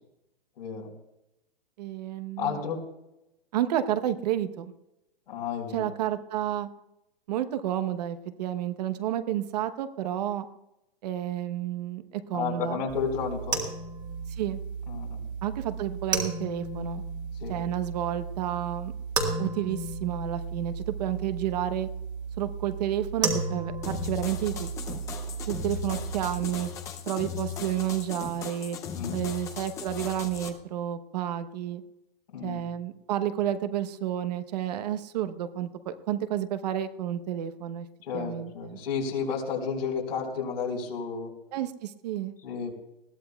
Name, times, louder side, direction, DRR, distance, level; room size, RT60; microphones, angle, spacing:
voice 1, 0.6-0.9 2.4-2.8 5.3-5.9 12.3-13.7 14.9-15.3 17.4-17.5 28.9-29.2 32.3-32.6 38.0-41.3 42.4-42.7, left 6 dB, 80° left, 1 dB, 4.5 m, -32 dB
voice 2, 1.8-2.6 3.5-4.7 5.7-6.7 7.3-10.5 11.0-12.8 14.3-14.6 15.4-17.0 17.5-18.9 19.4-21.9 22.4-25.0 25.5-26.7 27.1-28.8 29.1-31.8 32.4-37.9 38.1-38.8 41.5-42.3, right 11 dB, 45° right, 10 dB, 1.0 m, -31 dB
sound 1, 12.9-26.5, right 4 dB, 15° right, 1.6 m, -34 dB
sound 2, 23.8-30.5, left 8 dB, 10° left, 0.5 m, -38 dB
20.5 x 15.5 x 2.3 m, 0.90 s
hypercardioid pair, 160°, 29 cm